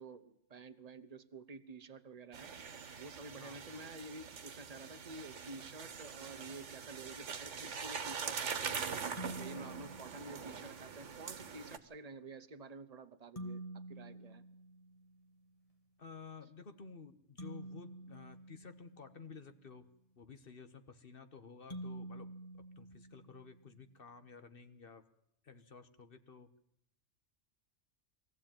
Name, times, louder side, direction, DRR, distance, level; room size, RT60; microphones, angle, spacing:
voice 1, 0.0-2.5 3.0-9.0 9.3-14.5, right 3 dB, 35° right, 9 dB, 1.0 m, -50 dB
sound 1, 2.3-11.8, right 6 dB, 75° right, 1.5 m, -43 dB
sound 2, 9.2-10.8 13.4-15.4 17.4-19.5 21.7-23.8, right 1 dB, 30° left, 1.6 m, -48 dB
voice 2, 9.5-9.9 16.0-19.9 20.2-25.1 25.4-26.5, left 5 dB, 50° left, 10 dB, 1.4 m, -53 dB
22.0 x 15.0 x 9.0 m, 0.74 s
omnidirectional pair, 1.2 m